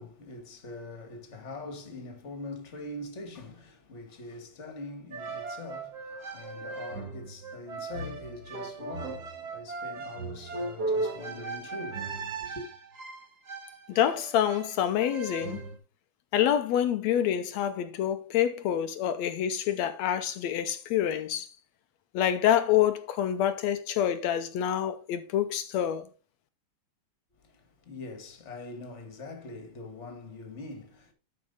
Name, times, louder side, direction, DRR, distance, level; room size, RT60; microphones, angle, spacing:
voice 1, 0.0-12.6 27.4-31.1, left 2 dB, 30° left, 1.6 m, -43 dB
sound 1, 5.1-15.8, right 3 dB, 40° right, 1.7 m, -37 dB
voice 2, 13.9-15.6 16.3-21.5 22.1-26.1, left 10 dB, 75° left, 1.8 m, -27 dB
12.0 x 5.4 x 4.0 m
omnidirectional pair, 3.5 m